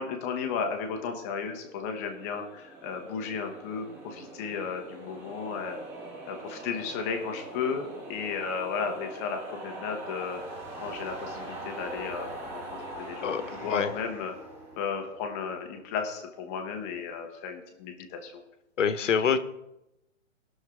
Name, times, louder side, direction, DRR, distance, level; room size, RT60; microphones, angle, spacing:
voice 1, 0.0-5.8 6.3-10.4 10.8-12.6 13.0-14.3 14.8-18.4, left 6 dB, 10° left, 4 dB, 0.7 m, -34 dB
sound 1, 1.5-15.8, right 2 dB, 15° right, 1.4 m, -42 dB
voice 2, 13.2-13.9 18.8-19.4, left 7 dB, 70° left, 12 dB, 1.1 m, -26 dB
19.0 x 6.4 x 3.6 m, 0.90 s
hypercardioid pair, 160°, 39 cm